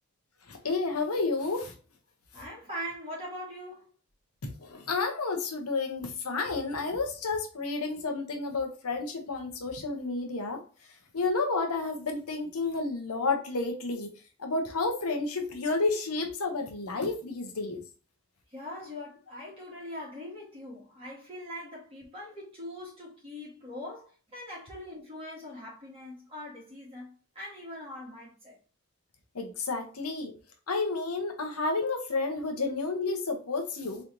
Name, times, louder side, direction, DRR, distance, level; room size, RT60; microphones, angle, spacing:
voice 1, 0.5-1.7 4.6-10.6 11.1-14.1 14.4-17.8 29.3-30.3 30.7-34.0, left 3 dB, 90° left, 1.0 m, -31 dB
voice 2, 2.3-3.9 18.5-28.6, left 1 dB, 25° right, 1.9 m, -42 dB
3.8 x 3.3 x 2.9 m
head